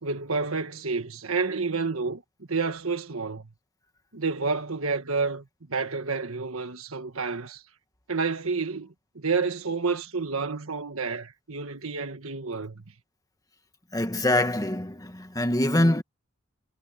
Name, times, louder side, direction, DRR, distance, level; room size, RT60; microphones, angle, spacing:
voice 1, 0.0-2.2 2.5-3.5 4.1-7.6 8.1-12.8, right 4 dB, 70° right, 1.7 m, -29 dB
voice 2, 13.9-16.0, left 1 dB, 15° left, 1.9 m, -24 dB
head